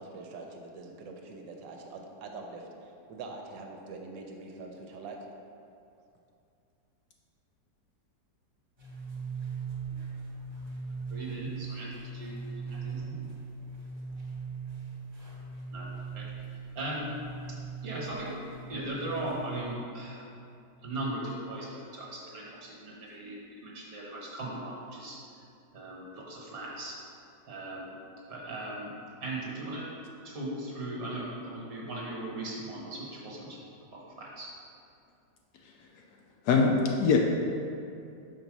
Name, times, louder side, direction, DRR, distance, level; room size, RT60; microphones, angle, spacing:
voice 1, 0.0-5.2, right 3 dB, 80° right, 2 dB, 1.4 m, -44 dB
sound 1, 8.8-19.8, right 5 dB, 20° right, 0.8 m, -40 dB
voice 2, 11.1-13.3 15.7-15.9 16.1-16.3 16.7-17.1 17.5-18.4 18.7-20.2 20.8-25.2 25.7-27.0 27.5-28.0 28.3-28.9 29.2-29.9 30.2-34.5, right 1 dB, 55° right, -4 dB, 1.5 m, -38 dB
voice 3, 36.5-37.2, left 4 dB, 70° left, 1 dB, 1.0 m, -22 dB
5.1 x 4.0 x 6.0 m, 2.5 s
omnidirectional pair, 1.9 m